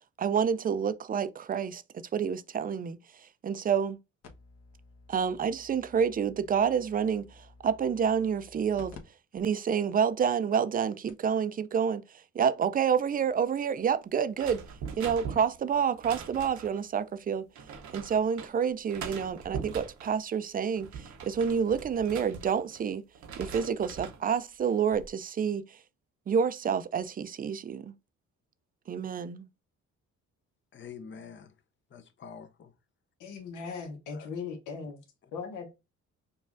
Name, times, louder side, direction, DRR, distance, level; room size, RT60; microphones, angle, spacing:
voice 1, 0.2-1.8 2.1-4.0 5.1-9.0 9.3-12.0 12.3-14.6 15.0-17.5 17.9-23.0 23.4-25.8 26.3-27.9 28.9-29.5, right 7 dB, 30° right, 0.4 m, -28 dB
sound 1, 4.2-9.0 9.4-9.5 10.1-10.2 10.8-10.9 11.1-11.3 12.6-12.7, left 3 dB, 60° left, 1.0 m, -53 dB
sound 2, 14.3-16.8 17.6-18.5 18.9-20.2 20.6-22.8 23.1-24.2 24.7-25.1, right 6 dB, 70° right, 0.8 m, -42 dB
voice 2, 30.7-31.6 31.9-32.7 34.1-34.3, left 6 dB, 40° left, 0.6 m, -46 dB
voice 3, 33.2-35.0 35.3-35.7, left 5 dB, 85° left, 1.0 m, -38 dB
5.3 x 2.4 x 2.5 m
cardioid pair, 90°, 30 cm